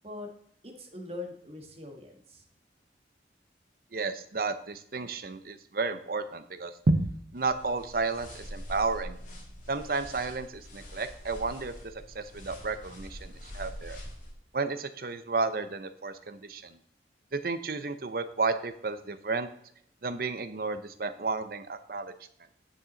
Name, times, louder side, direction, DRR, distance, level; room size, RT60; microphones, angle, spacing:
voice 1, 0.6-2.4, left 2 dB, 35° right, 3 dB, 1.4 m, -42 dB
voice 2, 3.9-9.2 9.7-11.7 12.1-14.0 14.5-16.8 17.3-19.5 20.0-22.1, right 3 dB, 55° right, 11 dB, 0.7 m, -32 dB
sound 1, 7.4-14.3, equal, 45° left, 2.2 m, -44 dB
9.9 x 6.0 x 3.9 m, 0.70 s
head